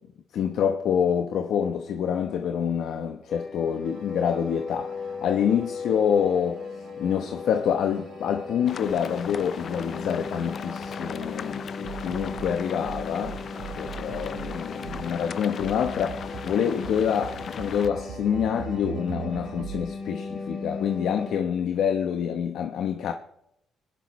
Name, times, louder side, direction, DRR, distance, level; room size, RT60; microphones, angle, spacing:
voice 1, 0.3-6.7 7.0-13.4 13.8-23.1, left 8 dB, 75° left, 0.9 m, -27 dB
sound 1, 3.3-21.4, left 4 dB, 40° left, 2.1 m, -38 dB
sound 2, 3.8-19.8, right 9 dB, 75° right, 0.8 m, -43 dB
sound 3, 8.7-17.9, left 7 dB, 55° left, 0.5 m, -38 dB
22.5 x 11.0 x 3.2 m
cardioid pair, 90°, 0 cm